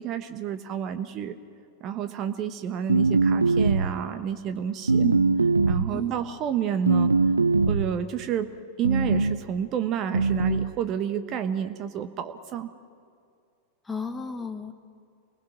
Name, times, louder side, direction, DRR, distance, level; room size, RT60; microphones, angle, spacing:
voice 1, 0.0-1.4 1.8-5.1 5.6-7.1 7.7-8.5 8.8-12.7, right 8 dB, 35° right, 9 dB, 1.2 m, -30 dB
sound 1, 2.9-4.0 4.9-6.0 6.9-8.0 8.8-9.4 10.1-10.7, right 3 dB, 80° right, 0.5 m, -22 dB
voice 2, 13.9-14.7, left 4 dB, 10° left, 6 dB, 1.6 m, -33 dB
28.5 x 20.5 x 6.1 m, 2.4 s
figure-of-eight pair, 90°, 0 cm